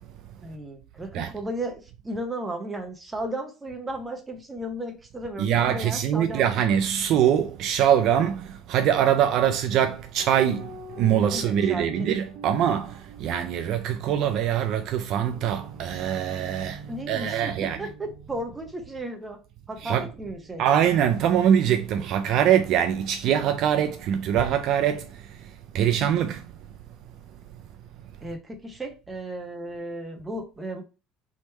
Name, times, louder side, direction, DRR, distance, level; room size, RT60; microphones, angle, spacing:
voice 1, 0.4-6.5 11.3-11.9 16.9-19.4 19.7-20.6 28.2-30.8, right 1 dB, 10° right, 0.9 m, -35 dB
voice 2, 5.4-17.8 19.8-20.1 20.6-26.4, right 9 dB, 50° right, 0.4 m, -23 dB
sound 1, 10.2-13.8 15.3-19.0 19.8-21.1, right 2 dB, 70° right, 1.2 m, -44 dB
3.6 x 3.1 x 4.3 m
cardioid pair, 175°, 0 cm